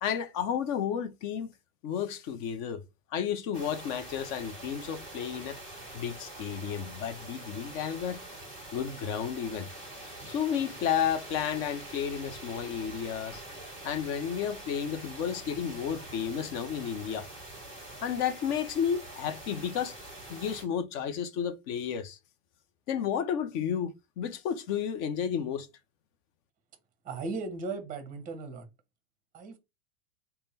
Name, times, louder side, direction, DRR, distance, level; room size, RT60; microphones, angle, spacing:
voice 1, 0.0-1.5 1.8-2.8 3.1-5.6 5.9-8.2 8.7-9.7 10.2-13.4 13.8-17.3 18.0-20.0 20.3-22.2 22.9-25.7, left 8 dB, 35° left, 0.6 m, -32 dB
sound 1, 3.5-20.7, right 1 dB, 15° left, 1.7 m, -45 dB
voice 2, 27.0-28.6 29.3-29.6, right 3 dB, 20° right, 1.1 m, -37 dB
3.5 x 2.2 x 4.0 m
supercardioid pair, 135°, 39 cm